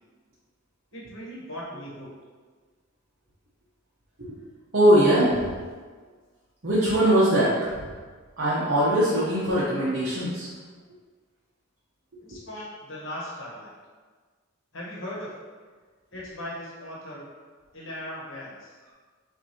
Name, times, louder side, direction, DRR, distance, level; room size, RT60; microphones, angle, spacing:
voice 1, 0.9-2.2 12.2-13.7 14.7-15.5 16.1-17.3 17.7-18.8, left 1 dB, 60° left, -5 dB, 1.1 m, -38 dB
voice 2, 4.7-5.5 6.6-7.9 8.4-10.5, equal, 55° right, -9 dB, 0.8 m, -21 dB
5.8 x 2.6 x 2.8 m, 1.5 s
head